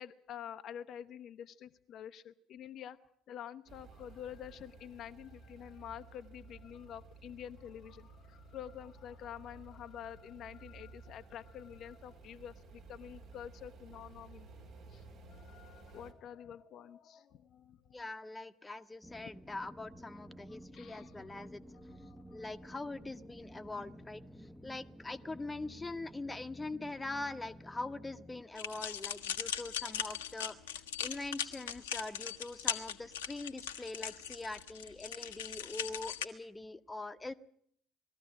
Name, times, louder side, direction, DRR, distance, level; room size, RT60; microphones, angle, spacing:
voice 1, 0.0-3.0 3.3-14.5 14.9-18.0 20.7-21.4 21.7-22.5, left 9 dB, 50° left, 8 dB, 0.8 m, -48 dB
sound 1, 3.7-16.1, right 3 dB, 55° right, 2.8 m, -55 dB
voice 2, 17.9-21.6 22.3-24.2 24.6-30.6 31.0-37.3, left 2 dB, 15° left, 9 dB, 1.0 m, -43 dB
sound 2, 19.0-28.4, equal, 5° right, 1.0 m, -53 dB
sound 3, 28.6-36.3, left 9 dB, 80° left, 1.0 m, -39 dB
20.5 x 14.0 x 9.7 m, 0.66 s
figure-of-eight pair, 55°, 0 cm